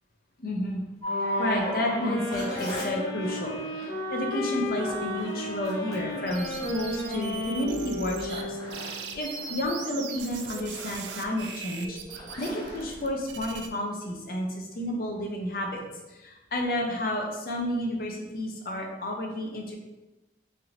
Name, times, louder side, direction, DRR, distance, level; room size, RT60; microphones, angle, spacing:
voice 1, 0.4-0.8 1.4-15.8 16.1-19.8, left 1 dB, 55° left, 0 dB, 0.5 m, -31 dB
sound 1, 1.0-14.1, equal, 20° left, 0.8 m, -39 dB
sound 2, 1.1-9.0, left 2 dB, 70° left, 1.4 m, -33 dB
sound 3, 6.3-8.4 8.7-13.7, right 6 dB, 75° right, 0.3 m, -40 dB
3.2 x 2.5 x 2.8 m, 1.0 s
head